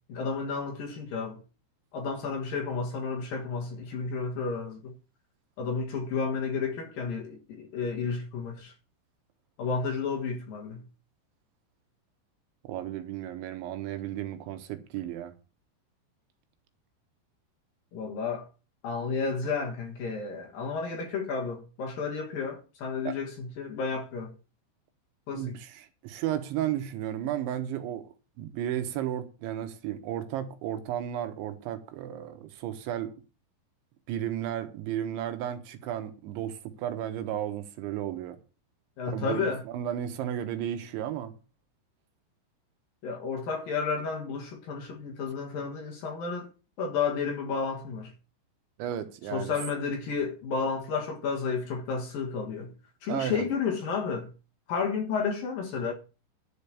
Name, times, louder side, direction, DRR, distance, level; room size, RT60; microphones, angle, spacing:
voice 1, 0.1-1.4 1.9-4.9 5.6-8.7 9.6-10.8 17.9-18.4 18.8-24.3 25.3-25.6 39.0-39.6 43.0-46.5 46.8-48.1 49.3-52.7 53.0-54.3 54.7-55.9, left 5 dB, 60° left, 2.7 m, -32 dB
voice 2, 12.6-15.3 23.0-23.2 25.3-28.1 28.4-33.1 34.1-38.4 39.1-41.4 48.8-49.5 53.1-53.5, right 11 dB, 80° right, 3.5 m, -33 dB
11.0 x 5.2 x 8.4 m
omnidirectional pair, 5.4 m